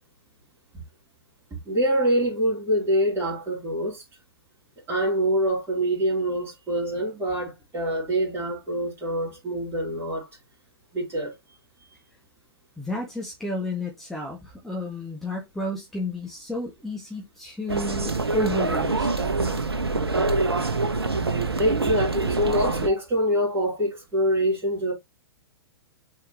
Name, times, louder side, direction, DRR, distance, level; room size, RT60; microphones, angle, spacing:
voice 1, 1.7-4.0 4.9-10.3 10.9-11.3 21.1-21.2 21.6-24.9, equal, 15° right, 3.8 m, -25 dB
voice 2, 12.8-19.1, left 1 dB, ahead, 1.8 m, -32 dB
sound 1, 17.7-22.9, right 3 dB, 75° right, 1.0 m, -25 dB
7.2 x 4.7 x 2.9 m
figure-of-eight pair, 110°, 13 cm